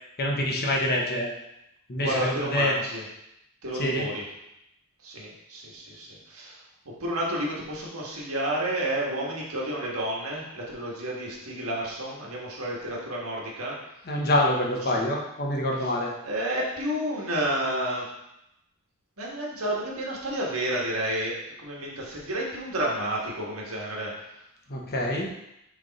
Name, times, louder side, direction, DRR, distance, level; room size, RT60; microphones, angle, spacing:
voice 1, 0.2-1.3 1.9-2.7 3.7-4.1 14.1-16.1 24.7-25.3, left 1 dB, 45° left, -1 dB, 1.1 m, -26 dB
voice 2, 1.9-3.0 3.6-4.2 5.0-6.6 7.0-13.8 14.7-15.0 15.8-15.9 16.2-18.1 19.2-24.1, right 1 dB, 75° right, -3 dB, 1.6 m, -31 dB
6.5 x 3.6 x 4.1 m, 0.84 s
head